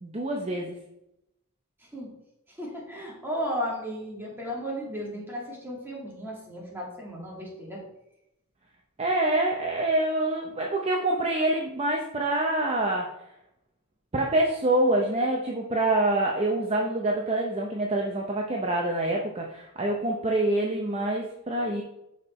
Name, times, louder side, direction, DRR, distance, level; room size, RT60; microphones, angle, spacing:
voice 1, 0.0-0.8 9.0-13.1 14.1-21.8, right 1 dB, 30° right, 0 dB, 0.7 m, -26 dB
voice 2, 2.5-7.8, equal, 10° right, -3 dB, 2.0 m, -35 dB
6.5 x 5.2 x 4.2 m, 0.85 s
head